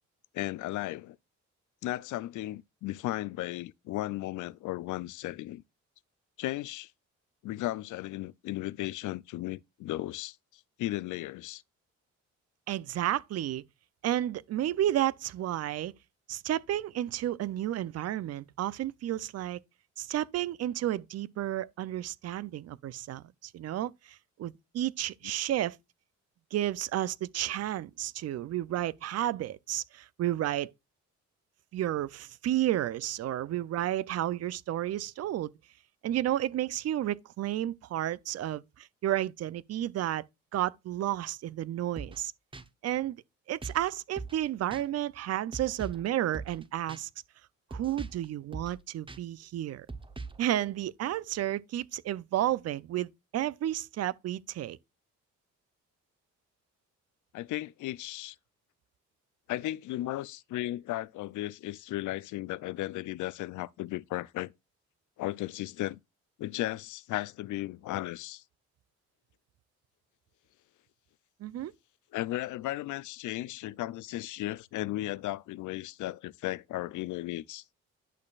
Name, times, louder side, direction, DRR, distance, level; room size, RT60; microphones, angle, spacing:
voice 1, 0.3-1.2 1.8-5.6 6.4-6.9 7.4-11.6 57.3-58.4 59.5-64.5 65.2-66.0 66.4-68.4 72.1-77.6, left 16 dB, 80° left, 0.5 m, -35 dB
voice 2, 12.7-13.6 14.0-15.9 16.3-19.6 20.0-25.8 26.5-30.7 31.7-35.5 36.0-40.2 40.5-42.3 42.8-43.2 43.5-47.1 47.7-49.9 50.4-54.8 71.4-71.7, right 13 dB, 55° right, 0.5 m, -32 dB
sound 1, 42.0-42.2 42.5-42.6 43.6-43.9 44.2-44.4 44.7-44.8 45.5-46.1 46.3-46.6 46.9-47.0 47.7-48.2 48.5-48.8 49.1-49.2 49.9-50.4, right 3 dB, 15° right, 0.8 m, -41 dB
11.0 x 6.5 x 2.5 m
cardioid pair, 90°, 30 cm